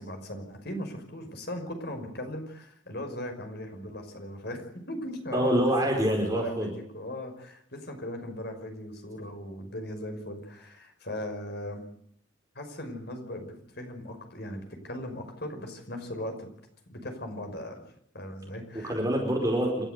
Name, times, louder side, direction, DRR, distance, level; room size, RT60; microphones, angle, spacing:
voice 1, 0.0-11.9 12.5-16.5 16.9-17.8 18.1-19.0, left 1 dB, 55° left, 5 dB, 5.7 m, -38 dB
voice 2, 5.3-6.7 18.8-19.9, right 1 dB, 20° right, 1 dB, 4.8 m, -26 dB
28.5 x 14.0 x 8.2 m, 0.66 s
head